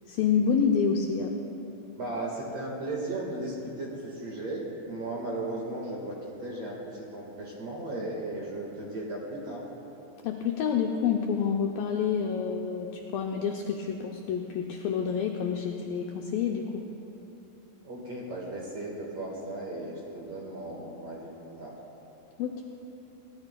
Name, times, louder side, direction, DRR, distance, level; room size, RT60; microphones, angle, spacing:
voice 1, 0.1-1.3 10.2-16.8 22.4-22.6, left 6 dB, 85° left, 2 dB, 2.0 m, -28 dB
voice 2, 2.0-9.6 17.8-21.7, right 2 dB, 55° right, -3 dB, 2.1 m, -36 dB
23.0 x 16.0 x 2.2 m, 2.9 s
omnidirectional pair, 4.8 m